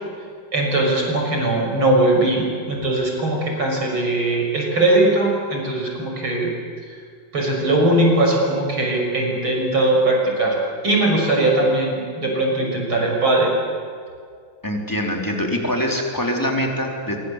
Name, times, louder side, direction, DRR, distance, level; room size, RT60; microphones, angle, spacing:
voice 1, 0.5-6.5 7.3-10.6 10.8-13.5, right 2 dB, 70° right, 0 dB, 7.1 m, -20 dB
voice 2, 14.6-17.2, equal, 10° left, 1 dB, 4.0 m, -24 dB
26.0 x 24.0 x 8.3 m, 2.1 s
omnidirectional pair, 2.3 m